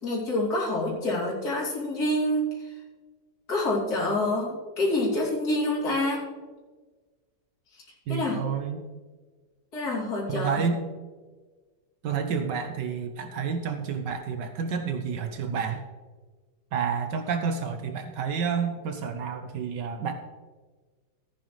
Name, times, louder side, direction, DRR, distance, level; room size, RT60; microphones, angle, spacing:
voice 1, 0.0-2.7 3.5-6.2 8.1-8.4 9.7-10.6, left 1 dB, 55° left, -6 dB, 3.4 m, -27 dB
voice 2, 8.1-8.8 10.3-10.8 12.0-15.8 16.7-20.1, right 6 dB, 75° right, 7 dB, 1.4 m, -29 dB
15.0 x 9.1 x 3.2 m, 1.4 s
omnidirectional pair, 2.0 m